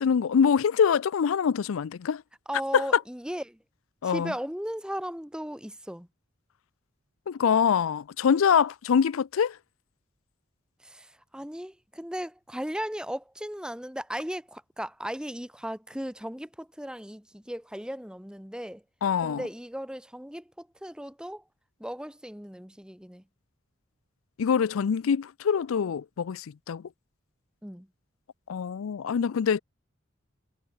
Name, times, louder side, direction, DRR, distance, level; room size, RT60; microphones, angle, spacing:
voice 1, 0.0-2.2 2.7-2.8 4.0-4.3 7.3-9.6 19.0-19.4 24.4-26.8 28.5-29.6, left 7 dB, 90° left, 0.4 m, -24 dB
voice 2, 2.5-3.6 4.0-6.1 10.8-18.8 19.2-21.4 21.8-23.2 27.6-27.9, equal, 5° right, 1.6 m, -36 dB
head